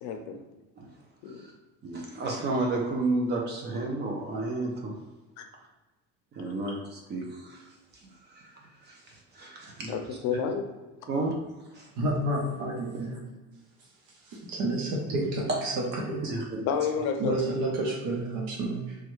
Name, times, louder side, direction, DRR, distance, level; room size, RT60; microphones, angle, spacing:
voice 1, 0.0-0.4 1.2-1.4 9.9-10.6 16.7-17.3, left 7 dB, 70° left, 5 dB, 0.5 m, -30 dB
voice 2, 1.8-4.9 6.3-7.7 8.0-8.5 8.8-10.0 11.1-11.3 11.7-11.9 15.1-15.2 15.5-15.6 16.3-16.7, right 2 dB, 35° right, 0 dB, 0.5 m, -32 dB
voice 3, 12.0-13.2 14.1-16.2 17.2-19.0, right 1 dB, 85° right, -2 dB, 0.8 m, -30 dB
3.2 x 2.3 x 3.0 m, 1.1 s
cardioid pair, 160°, 30 cm